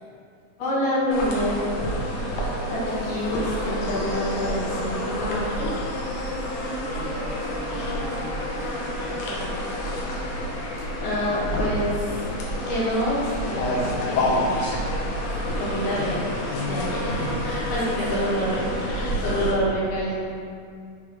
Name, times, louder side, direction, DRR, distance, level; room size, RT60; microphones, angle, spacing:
voice 1, 0.6-1.6 2.7-5.7 11.0-12.3 12.7-14.5 15.6-16.4 16.6-20.3, equal, 70° left, -8 dB, 2.3 m, -27 dB
sound 1, 1.1-19.5, left 1 dB, 85° left, 1.7 m, -28 dB
voice 2, 2.5-3.1 6.0-10.0 17.7-18.8, right 1 dB, 75° right, -6 dB, 2.1 m, -39 dB
6.6 x 3.6 x 4.4 m, 2.3 s
omnidirectional pair, 4.5 m